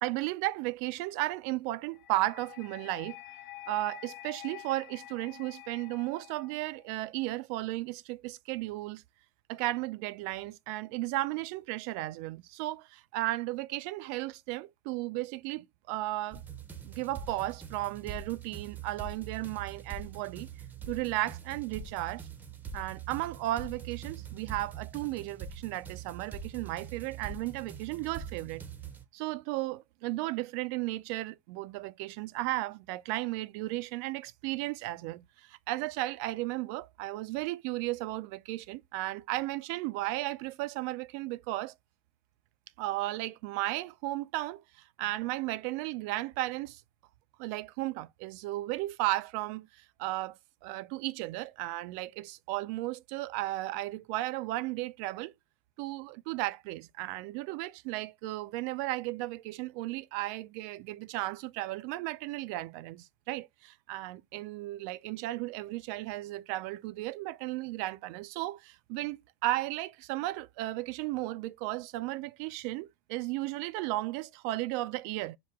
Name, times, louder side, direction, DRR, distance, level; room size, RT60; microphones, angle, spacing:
voice 1, 0.0-3.2 3.7-9.0 9.5-16.4 16.8-20.5 20.9-22.2 22.7-28.6 29.1-41.7 42.8-44.6 45.0-46.8 47.4-49.7 50.0-50.4 50.6-55.3 55.8-75.4, right 17 dB, 55° right, 0.4 m, -35 dB
sound 1, 1.9-7.0, left 15 dB, 75° left, 0.6 m, -48 dB
sound 2, 16.3-29.0, right 6 dB, 15° right, 0.7 m, -43 dB
5.9 x 2.1 x 3.5 m
hypercardioid pair, 110°, 10 cm